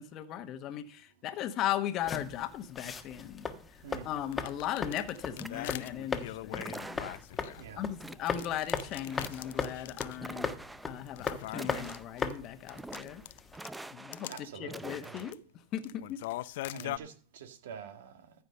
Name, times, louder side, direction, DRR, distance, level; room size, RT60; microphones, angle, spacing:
voice 1, 0.0-3.5 4.0-7.0 7.8-10.5 10.9-13.2 13.9-14.3 14.6-15.4 15.7-16.2, left 11 dB, 40° left, 1.2 m, -37 dB
sound 1, 2.0-13.6, left 4 dB, 15° left, 1.3 m, -39 dB
sound 2, 4.2-7.9 8.3-10.2 10.5-10.6 11.1-13.8 14.1-14.4 14.9-15.4 15.7-17.0, left 16 dB, 65° left, 0.6 m, -42 dB
sound 3, 5.4-6.0 6.5-7.4 8.0-8.6 8.9-9.7 10.2-10.9 11.5-12.3 12.7-13.2 13.5-14.3 14.6-15.3, right 2 dB, 5° right, 0.5 m, -45 dB
voice 2, 7.6-7.9 14.3-15.2 16.7-18.3, right 7 dB, 70° right, 2.0 m, -46 dB
14.5 x 5.1 x 6.7 m
hypercardioid pair, 115°, 0 cm